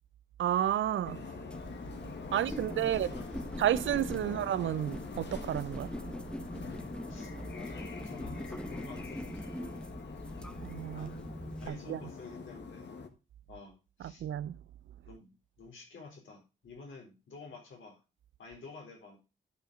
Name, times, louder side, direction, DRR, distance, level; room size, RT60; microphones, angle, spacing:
voice 1, 0.4-1.2 2.3-3.1 3.6-5.9 10.6-11.2 11.7-12.0 14.2-14.6, right 11 dB, 75° right, 0.5 m, -31 dB
sound 1, 1.0-13.1, left 5 dB, 65° left, 1.6 m, -45 dB
sound 2, 1.5-11.7, equal, 5° left, 1.1 m, -43 dB
voice 2, 2.3-3.5 4.2-4.4 6.6-9.9 10.9-11.3 11.6-12.9 13.5-14.2 15.1-18.0 18.4-19.2, left 4 dB, 80° left, 3.9 m, -50 dB
11.5 x 5.1 x 5.0 m
supercardioid pair, 50°, 20 cm